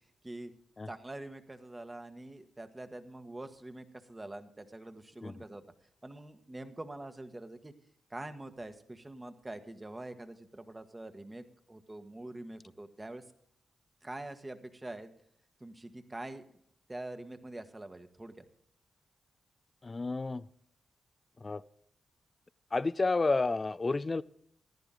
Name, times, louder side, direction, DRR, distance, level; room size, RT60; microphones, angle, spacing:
voice 1, 0.9-5.6 6.0-7.7 8.1-13.2 14.0-15.1 15.6-16.6 16.9-18.4, right 2 dB, 25° right, 8 dB, 1.4 m, -45 dB
voice 2, 19.8-20.4 21.4-21.6 22.7-24.2, left 3 dB, 35° left, 18 dB, 0.4 m, -30 dB
14.5 x 10.5 x 3.8 m, 0.65 s
supercardioid pair, 45°, 0 cm